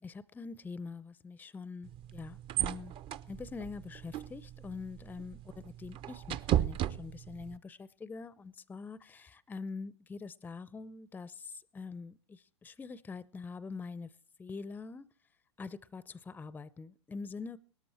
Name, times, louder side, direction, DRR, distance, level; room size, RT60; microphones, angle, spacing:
voice 1, 0.0-2.9 3.3-5.4 5.8-14.1 14.4-15.1 15.6-17.6, left 4 dB, 10° left, 0.6 m, -44 dB
sound 1, 1.8-7.6, right 11 dB, 35° right, 0.7 m, -36 dB
18.0 x 13.0 x 4.3 m
hypercardioid pair, 95°, 15 cm